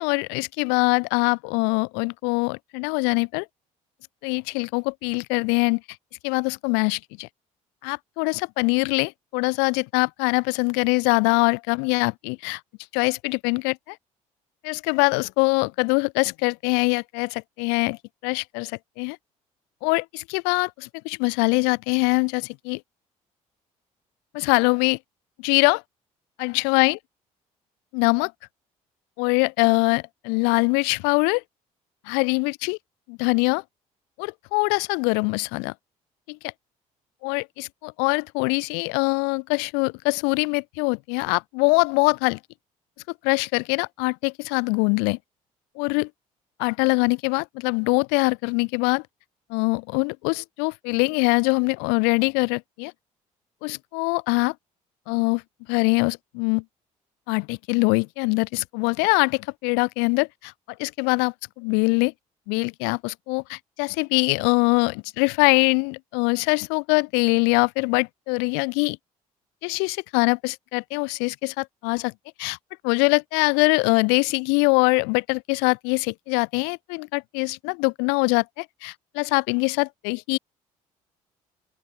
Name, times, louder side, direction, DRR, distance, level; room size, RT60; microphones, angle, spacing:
voice 1, 0.0-3.5 4.2-5.8 6.2-7.3 7.8-12.6 12.9-14.0 14.6-19.2 19.8-22.8 24.3-25.0 25.4-25.8 26.4-27.0 27.9-28.3 29.2-31.4 32.1-32.8 33.1-33.6 34.2-35.7 36.3-36.5 37.2-42.4 43.2-45.2 45.7-46.1 46.6-49.0 49.5-52.9 53.6-54.5 55.1-55.4 55.7-56.6 57.3-60.5 60.8-62.1 62.5-69.0 69.6-72.1 72.4-72.6 72.8-80.4, left 36 dB, 75° left, 1.3 m, -23 dB
open air
hypercardioid pair, 55°, 18 cm